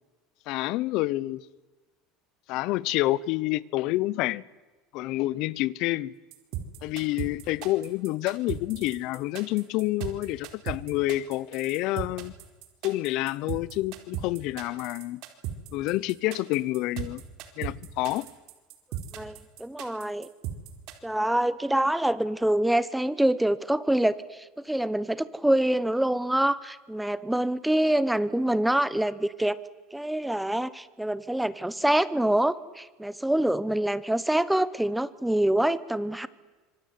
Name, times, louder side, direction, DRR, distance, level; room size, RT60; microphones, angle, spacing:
voice 1, 0.5-1.4 2.5-4.4 4.9-6.1 6.8-12.3 12.8-15.2 15.7-17.2 17.6-18.3, left 17 dB, 55° left, 0.9 m, -28 dB
sound 1, 6.3-20.9, right 11 dB, 55° right, 4.2 m, -36 dB
voice 2, 19.1-20.3 21.0-29.6 29.9-36.3, right 1 dB, 5° right, 1.0 m, -25 dB
25.5 x 24.5 x 9.6 m
cardioid pair, 155°, 0 cm